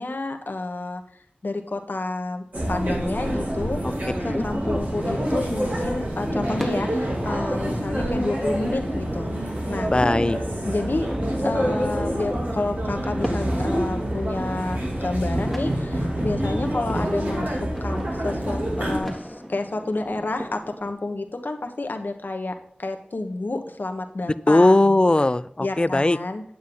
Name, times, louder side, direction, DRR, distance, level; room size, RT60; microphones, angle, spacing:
voice 1, 0.0-3.8 4.2-9.9 10.6-25.0 25.6-26.5, left 2 dB, 75° left, 5 dB, 1.2 m, -30 dB
sound 1, 2.5-19.0, equal, 55° right, 3.0 m, -27 dB
sound 2, 3.9-20.9, equal, 5° right, 1.8 m, -38 dB
voice 2, 9.9-10.4 24.5-26.2, left 2 dB, 30° left, 15 dB, 0.4 m, -18 dB
9.4 x 8.5 x 3.8 m, 0.65 s
wide cardioid pair, 55°, 3 cm